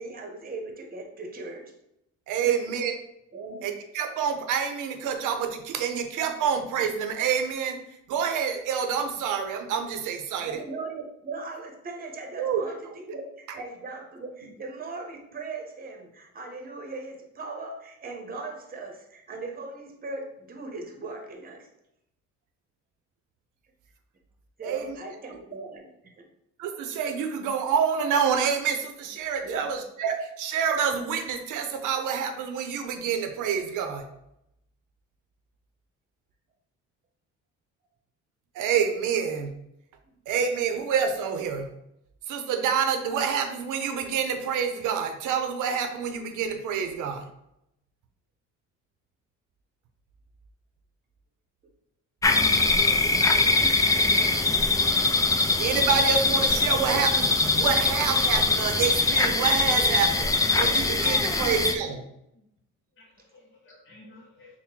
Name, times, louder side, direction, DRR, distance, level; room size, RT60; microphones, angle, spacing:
voice 1, 0.0-1.7 2.4-2.6 2.8-2.9 3.3-3.6 10.4-21.7 24.6-26.3 29.4-29.7 40.1-40.2, right 3 dB, 30° right, 3 dB, 0.9 m, -39 dB
voice 2, 2.3-3.0 3.6-7.8 8.1-10.6 12.4-12.6 24.6-25.0 26.6-34.1 38.5-39.5 40.3-41.7 42.3-47.2 55.6-60.3 60.6-62.0, right 7 dB, 85° right, 6 dB, 0.7 m, -27 dB
sound 1, 52.2-61.8, left 3 dB, 10° left, 0.3 m, -22 dB
voice 3, 60.6-61.6 61.9-62.0 63.0-64.6, equal, 40° left, -2 dB, 0.7 m, -44 dB
3.6 x 2.2 x 4.3 m, 0.82 s
cardioid pair, 90°, 30 cm